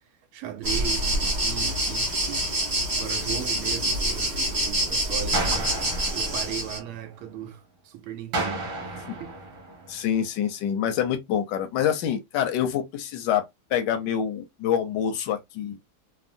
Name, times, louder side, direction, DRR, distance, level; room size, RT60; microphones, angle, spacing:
voice 1, 0.3-2.5 2.9-5.8 6.1-9.4, right 11 dB, 90° right, 1.5 m, -37 dB
sound 1, 0.6-6.8, right 1 dB, 40° right, 0.6 m, -26 dB
sound 2, 5.3-7.4 8.3-10.4, right 2 dB, 60° right, 1.4 m, -33 dB
voice 2, 9.9-15.8, left 9 dB, 75° left, 1.0 m, -26 dB
3.6 x 2.0 x 2.5 m
omnidirectional pair, 2.3 m